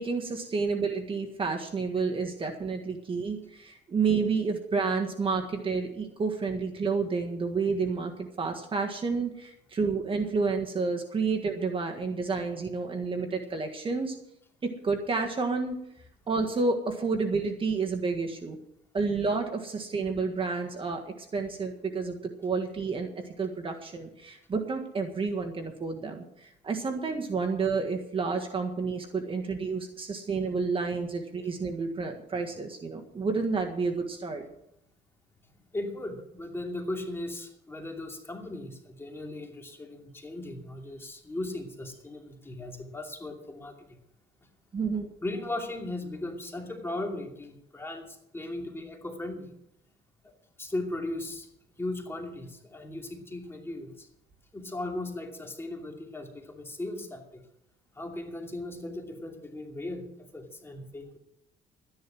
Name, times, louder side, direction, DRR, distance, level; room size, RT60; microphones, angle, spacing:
voice 1, 0.0-14.1 14.6-15.7 16.3-18.6 18.9-23.1 23.4-34.4 44.7-45.1, right 4 dB, 30° right, 4 dB, 1.7 m, -30 dB
voice 2, 35.7-44.0 45.2-49.5 50.2-50.3 50.6-51.5 51.8-54.1 54.5-57.4 57.9-61.2, left 2 dB, 15° left, 2 dB, 2.7 m, -37 dB
12.5 x 10.5 x 6.2 m, 0.77 s
cardioid pair, 110°, 17 cm